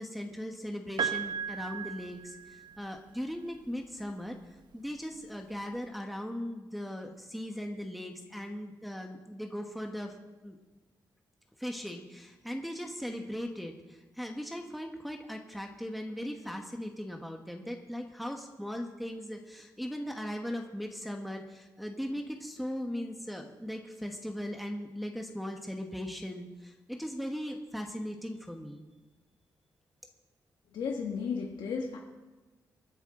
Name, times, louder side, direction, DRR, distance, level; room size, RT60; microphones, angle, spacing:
voice 1, 0.0-4.4 4.7-10.2 10.4-10.6 11.6-28.8, equal, ahead, 2 dB, 1.2 m, -38 dB
Piano, 1.0-3.0 4.3-4.4, right 7 dB, 75° right, 1.0 m, -35 dB
voice 2, 30.7-32.0, left 5 dB, 80° left, 0 dB, 1.4 m, -34 dB
26.5 x 10.0 x 3.8 m, 1.2 s
cardioid pair, 120°, 8 cm